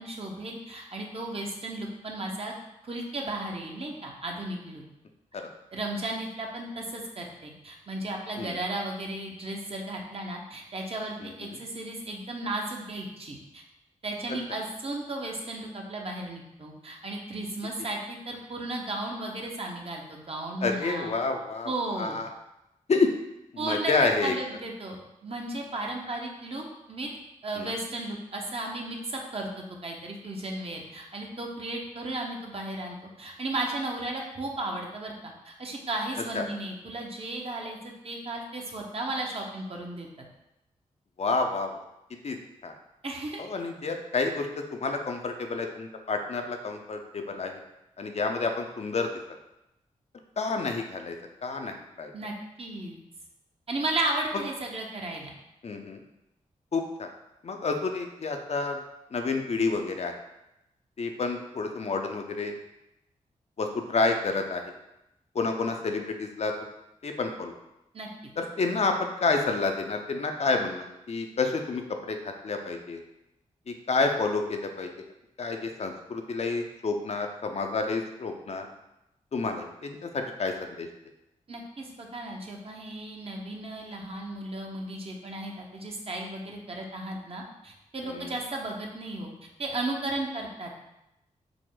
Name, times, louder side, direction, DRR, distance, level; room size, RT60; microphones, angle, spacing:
voice 1, 0.0-2.5 2.8-4.8 5.7-13.6 14.0-21.1 21.6-22.2 23.6-27.1 27.4-40.3 43.0-43.4 52.1-52.3 52.6-53.0 53.7-55.3 67.9-68.1 81.5-89.3 89.6-90.7, right 2 dB, 45° right, 0 dB, 0.9 m, -35 dB
voice 2, 11.2-11.6 20.6-21.7 22.0-22.3 22.9-23.1 23.5-24.3 27.6-27.7 36.3-36.4 41.2-41.7 42.2-42.4 42.6-42.8 43.4-47.5 48.0-49.1 50.4-51.2 51.4-52.1 55.6-56.0 56.7-57.1 57.4-58.8 59.1-60.1 61.0-62.5 63.6-64.6 65.3-66.5 67.0-67.5 68.4-73.0 73.7-74.9 75.4-78.7 79.3-80.9 88.0-88.3, left 3 dB, 50° left, 4 dB, 0.5 m, -29 dB
4.8 x 2.1 x 3.8 m, 0.88 s
cardioid pair, 50°, 14 cm